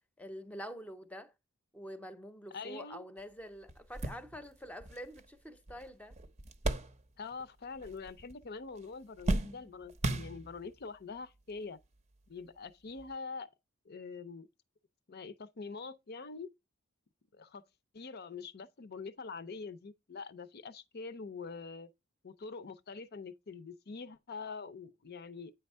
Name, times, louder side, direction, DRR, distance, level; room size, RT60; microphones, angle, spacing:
voice 1, 0.2-1.3 1.7-6.2, equal, 5° left, 0.7 m, -46 dB
voice 2, 2.5-3.1 7.2-11.8 12.3-13.5 13.9-14.5 15.1-16.5 17.3-17.6 17.9-21.9 22.2-25.5, left 4 dB, 50° left, 0.6 m, -44 dB
sound 1, 3.2-3.3 3.7-7.5 7.7-8.5 8.8-10.8 11.6-11.7 13.0-13.1, right 2 dB, 30° right, 0.7 m, -37 dB
9.0 x 3.5 x 5.4 m
head